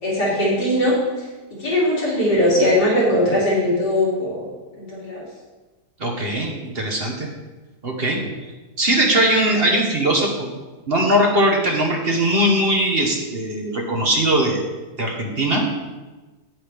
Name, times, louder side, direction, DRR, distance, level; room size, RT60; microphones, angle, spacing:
voice 1, 0.0-1.0 1.6-4.4 4.8-5.3, left 1 dB, 80° left, -6 dB, 3.5 m, -19 dB
voice 2, 6.0-7.3 7.8-8.2 8.8-10.5 10.9-14.6 15.0-15.7, right 1 dB, 40° right, 0 dB, 1.2 m, -20 dB
9.4 x 8.8 x 3.5 m, 1.2 s
omnidirectional pair, 1.8 m